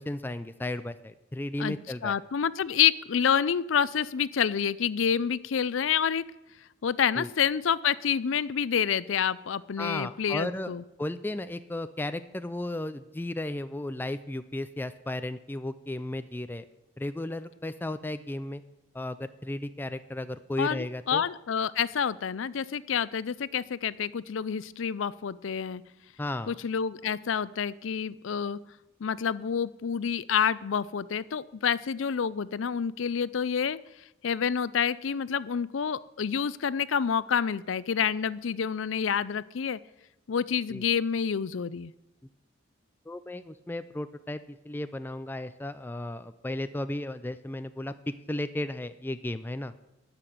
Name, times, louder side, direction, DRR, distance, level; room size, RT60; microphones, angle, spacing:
voice 1, 0.0-2.2 7.2-7.3 9.8-10.7 11.0-16.6 17.0-18.6 18.9-21.2 26.2-26.5 40.7-40.9 43.1-49.7, left 1 dB, 10° left, 11 dB, 0.4 m, -34 dB
voice 2, 2.0-6.2 6.8-10.8 20.6-25.8 26.5-28.6 29.0-33.8 34.2-39.8 40.3-41.9, left 7 dB, 75° left, 18 dB, 0.5 m, -28 dB
13.0 x 5.9 x 9.2 m, 0.93 s
head